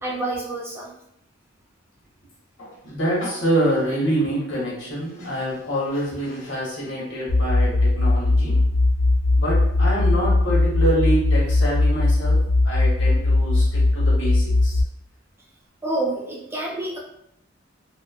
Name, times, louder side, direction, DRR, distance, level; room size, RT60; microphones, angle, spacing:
voice 1, 0.0-0.9 15.8-17.0, right 2 dB, 15° right, -3 dB, 0.4 m, -28 dB
voice 2, 2.6-8.6 9.4-14.8, right 1 dB, 65° left, -4 dB, 1.0 m, -26 dB
sound 1, 7.3-14.8, left 2 dB, 45° right, 0.8 m, -19 dB
2.9 x 2.0 x 2.3 m, 0.74 s
head